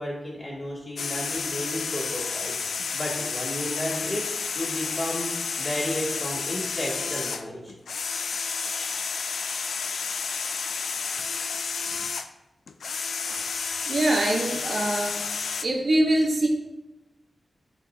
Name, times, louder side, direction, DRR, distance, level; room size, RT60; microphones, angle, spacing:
voice 1, 0.0-5.3 5.6-7.7, left 1 dB, 25° left, -5 dB, 2.4 m, -33 dB
sound 1, 1.0-12.3 12.7-15.6, left 5 dB, 80° left, 0.4 m, -31 dB
voice 2, 13.9-15.2 15.6-16.5, right 1 dB, 55° right, 0 dB, 1.1 m, -23 dB
11.5 x 4.8 x 2.8 m, 0.98 s
wide cardioid pair, 130°, 0 cm